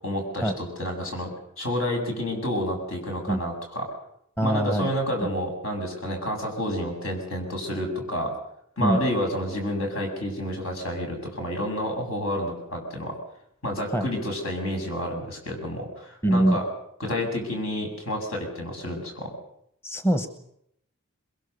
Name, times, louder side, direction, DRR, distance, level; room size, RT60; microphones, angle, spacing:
voice 1, 0.0-3.9 4.4-8.3 8.8-13.1 13.6-16.6 17.0-19.3, equal, 70° left, 3 dB, 7.5 m, -29 dB
voice 2, 4.4-4.9 8.8-9.0 13.9-14.1 16.2-16.6 19.8-20.3, right 1 dB, 10° left, 9 dB, 1.1 m, -23 dB
22.0 x 22.0 x 6.8 m, 0.73 s
head